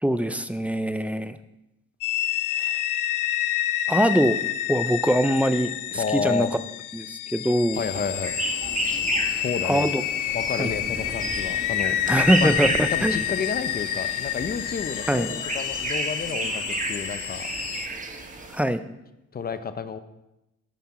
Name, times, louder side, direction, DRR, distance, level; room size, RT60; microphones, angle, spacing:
voice 1, 0.0-1.4 2.6-2.8 3.9-4.4 4.7-6.5 6.9-7.8 9.6-10.0 10.6-10.7 12.1-13.2 15.1-15.3 18.5-18.8, equal, 5° right, 11 dB, 0.4 m, -23 dB
sound 1, 2.0-17.9, left 13 dB, 85° left, 0.5 m, -29 dB
voice 2, 5.9-6.5 7.8-8.3 9.2-9.9 10.3-12.0 12.4-12.5 12.9-17.5 19.3-20.0, left 6 dB, 30° left, 11 dB, 0.7 m, -30 dB
sound 2, 7.7-18.6, right 2 dB, 25° right, 1.1 m, -32 dB
sound 3, 9.6-15.3, left 3 dB, 60° left, 1.9 m, -50 dB
10.5 x 5.8 x 4.2 m, 0.93 s
cardioid pair, 90°, 30 cm